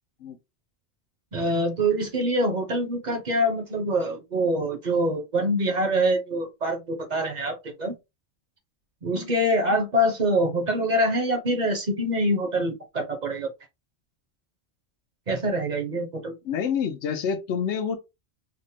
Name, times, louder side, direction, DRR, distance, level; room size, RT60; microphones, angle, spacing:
voice 1, 1.3-7.9 9.0-13.5 15.3-16.3, equal, 45° right, 0.7 m, -25 dB
voice 2, 16.4-18.0, left 7 dB, 75° left, 0.9 m, -28 dB
3.6 x 2.1 x 2.6 m
omnidirectional pair, 1.2 m